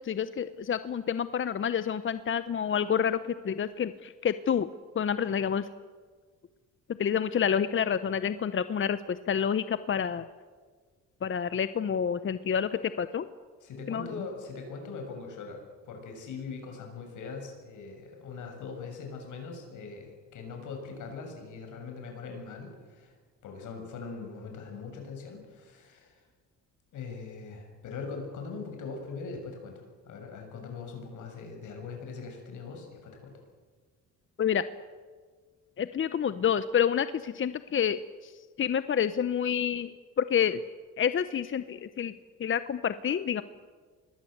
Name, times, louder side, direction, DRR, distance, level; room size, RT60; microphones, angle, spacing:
voice 1, 0.0-4.7 4.9-5.7 7.0-10.3 11.2-13.3 13.9-14.2 34.4-34.6 35.8-40.6 41.0-42.1 42.4-43.4, left 8 dB, 40° left, 13 dB, 0.9 m, -28 dB
voice 2, 13.6-23.2 23.4-26.2 26.9-33.3, left 4 dB, 80° left, 3 dB, 7.0 m, -41 dB
26.0 x 20.5 x 8.0 m, 1.5 s
cardioid pair, 90°, 30 cm